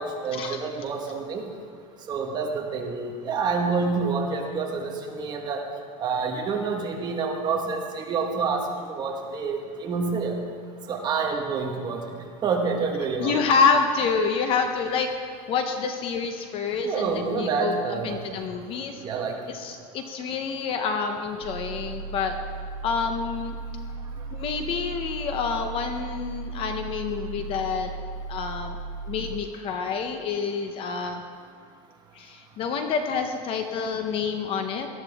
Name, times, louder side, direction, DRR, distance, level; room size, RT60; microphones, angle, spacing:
voice 1, 0.0-1.4 2.1-5.6 6.0-8.6 8.9-10.3 10.9-12.0 12.4-13.4 16.8-18.2 19.0-19.4, right 5 dB, 20° right, 1 dB, 1.3 m, -27 dB
voice 2, 13.2-19.0 19.5-22.4 22.8-23.6 24.3-27.9 28.3-28.8 29.1-31.2 32.1-34.9, left 5 dB, 30° left, 6 dB, 0.7 m, -27 dB
sound 1, 21.4-29.4, right 4 dB, 70° right, 2.1 m, -36 dB
18.5 x 12.5 x 3.5 m, 2.1 s
supercardioid pair, 165°, 19 cm